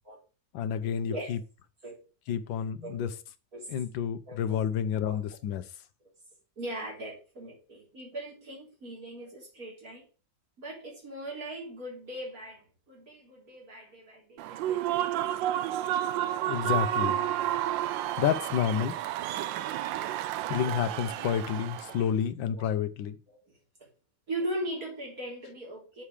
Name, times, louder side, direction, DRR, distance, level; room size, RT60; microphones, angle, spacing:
voice 1, 0.5-1.4 2.3-3.1 3.7-5.6 16.5-17.2 17.8-18.9 20.5-23.2, left 8 dB, 85° left, 1.5 m, -30 dB
voice 2, 4.3-4.7 4.9-5.2 6.0-6.1 6.6-10.1 10.6-15.3 22.0-22.1 22.5-22.7 23.3-23.9 24.3-26.0, right 1 dB, 50° right, 3.6 m, -40 dB
Human voice / Cheering / Applause, 14.4-22.0, right 12 dB, 85° right, 1.3 m, -31 dB
7.1 x 4.9 x 7.1 m
omnidirectional pair, 2.0 m